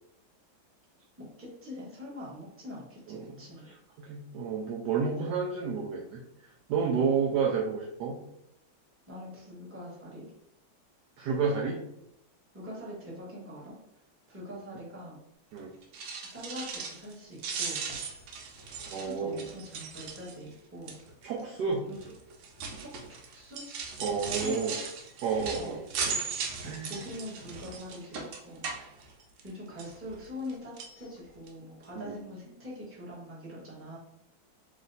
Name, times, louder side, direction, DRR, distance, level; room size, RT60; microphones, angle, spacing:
voice 1, 1.2-3.7 7.1-7.5 9.1-10.3 12.5-13.8 14.3-15.2 16.3-17.8 18.7-21.0 21.9-22.1 22.8-23.6 24.3-24.8 25.6-25.8 26.8-28.6 29.4-34.0, left 1 dB, 10° right, -7 dB, 1.0 m, -43 dB
voice 2, 3.6-6.2 6.7-8.2 11.2-11.8 15.5-15.7 18.9-19.4 21.2-21.9 24.0-24.7 25.2-25.8 26.6-26.9 32.0-32.1, right 5 dB, 75° right, -1 dB, 1.0 m, -30 dB
sound 1, 15.8-17.1 17.4-20.5 20.9-21.2 22.0-29.5 29.8-30.5 30.8-31.0 31.5-31.6 31.8-31.9, right 5 dB, 90° right, 1.6 m, -38 dB
3.2 x 3.1 x 3.9 m, 0.82 s
omnidirectional pair, 2.2 m